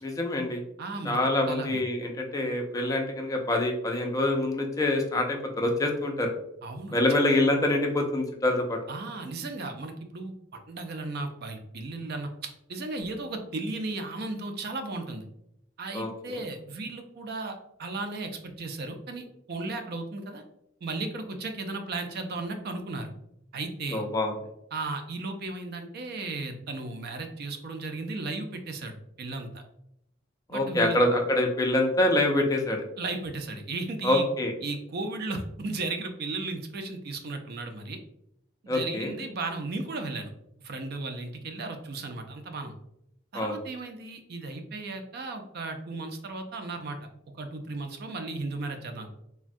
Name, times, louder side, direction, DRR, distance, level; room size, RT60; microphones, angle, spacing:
voice 1, 0.0-0.6 1.0-6.3 6.9-8.8 15.9-16.4 23.9-24.3 30.5-32.8 34.0-34.5 38.7-39.1 43.3-43.6, left 1 dB, 15° left, 2 dB, 0.4 m, -25 dB
voice 2, 0.8-1.2 1.5-1.8 6.6-7.2 8.9-15.2 15.8-20.4 20.8-23.1 23.5-24.0 24.7-29.6 30.5-31.0 33.0-34.3 34.6-38.0 38.6-40.3 40.6-42.7 43.3-47.0 47.4-49.1, right 3 dB, 50° right, 6 dB, 0.4 m, -35 dB
3.3 x 2.2 x 2.5 m, 0.79 s
head